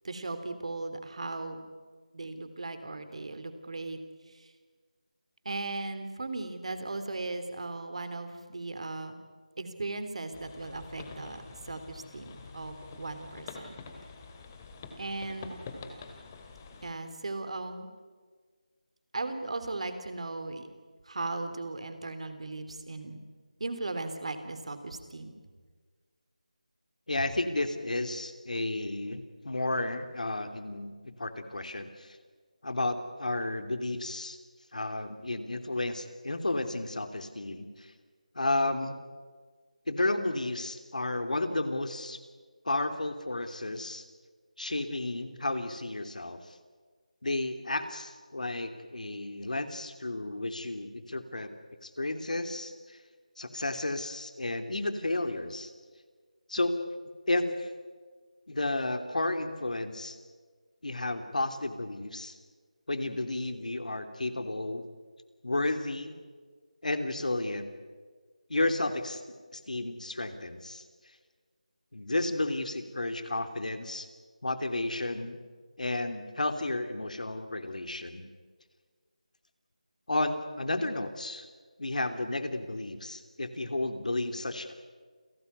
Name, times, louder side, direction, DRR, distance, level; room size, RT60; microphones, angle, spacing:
voice 1, 0.0-1.6 2.1-4.0 4.3-4.5 5.4-9.2 9.6-13.8 15.0-15.6 16.8-17.9 19.1-20.7 21.0-23.2 23.6-25.3, right 2 dB, 50° right, 9 dB, 3.3 m, -37 dB
sound 1, 10.3-16.9, left 4 dB, 20° left, 2.2 m, -46 dB
voice 2, 27.1-32.2 32.6-34.4 34.7-37.9 38.3-39.0 39.9-42.2 42.6-44.0 44.6-46.4 47.2-51.5 51.8-53.0 53.4-55.7 56.5-56.7 57.3-57.7 58.5-60.2 60.8-62.4 62.9-64.9 65.4-66.1 66.8-67.7 68.5-69.2 69.5-70.8 71.9-74.1 74.4-75.4 75.8-78.3 80.1-81.5 81.8-84.7, left 2 dB, 70° left, 8 dB, 3.1 m, -32 dB
29.0 x 17.0 x 9.6 m, 1.6 s
figure-of-eight pair, 170°, 4 cm